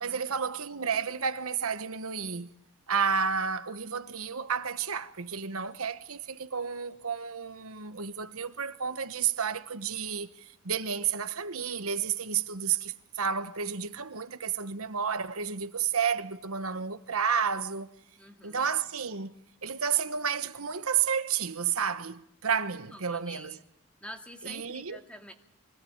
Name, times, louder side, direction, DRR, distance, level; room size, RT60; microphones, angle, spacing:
voice 1, 0.0-2.5 2.9-17.9 18.4-19.3 19.6-23.6 24.4-25.0, right 7 dB, 85° right, 1.2 m, -31 dB
voice 2, 18.2-18.7 22.9-23.6 24.0-25.3, equal, 5° left, 2.3 m, -47 dB
25.0 x 18.0 x 8.8 m
head